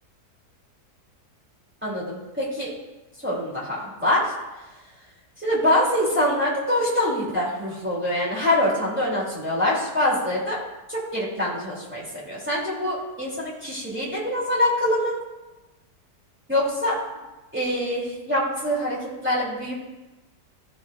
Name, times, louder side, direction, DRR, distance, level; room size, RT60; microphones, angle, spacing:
voice 1, 1.8-2.7 3.2-4.3 5.4-10.6 10.9-15.1 16.5-17.0 17.5-19.7, left 1 dB, 5° right, -7 dB, 2.6 m, -24 dB
14.5 x 5.1 x 2.4 m, 1.1 s
omnidirectional pair, 1.7 m